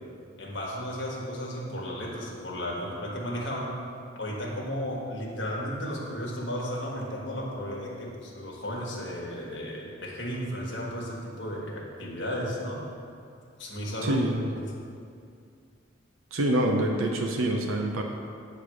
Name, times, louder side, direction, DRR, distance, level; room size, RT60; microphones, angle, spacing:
voice 1, 0.4-3.8 4.1-12.8 13.6-14.2 14.6-14.7, equal, 60° left, -3 dB, 1.3 m, -34 dB
voice 2, 14.0-14.4 16.3-18.0, right 1 dB, 85° right, 2 dB, 0.6 m, -26 dB
8.6 x 3.3 x 6.2 m, 2.4 s
head